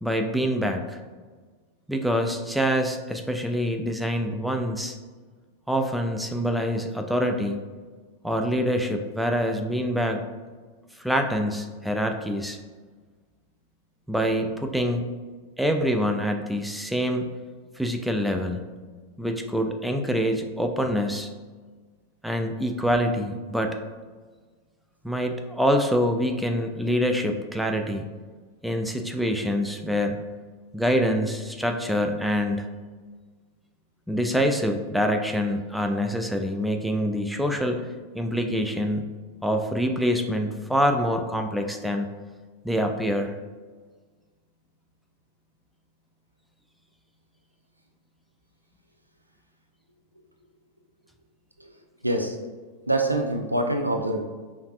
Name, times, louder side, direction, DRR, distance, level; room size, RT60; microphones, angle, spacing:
voice 1, 0.0-1.0 1.9-5.0 5.7-7.6 8.2-10.2 11.0-12.6 14.1-15.0 15.6-17.3 17.8-18.7 19.2-21.3 22.2-23.8 25.0-28.1 28.6-30.2 30.7-32.7 34.1-37.8 38.1-39.1 39.4-42.1 42.6-43.3, equal, ahead, 4 dB, 0.3 m, -25 dB
voice 2, 52.0-52.4 52.9-54.2, right 1 dB, 85° right, 3 dB, 0.4 m, -25 dB
5.1 x 2.4 x 2.4 m, 1.4 s
figure-of-eight pair, 90°, 0 cm